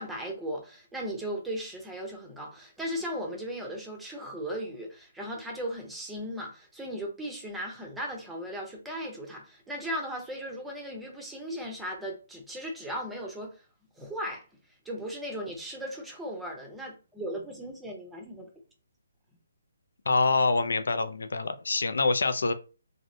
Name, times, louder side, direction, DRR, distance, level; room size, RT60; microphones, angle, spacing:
voice 1, 0.0-13.6 14.0-14.4 14.8-18.5, equal, 5° right, 0.6 m, -37 dB
voice 2, 20.1-22.5, left 3 dB, 80° left, 0.5 m, -25 dB
3.1 x 2.7 x 2.6 m
hypercardioid pair, 170°, 0 cm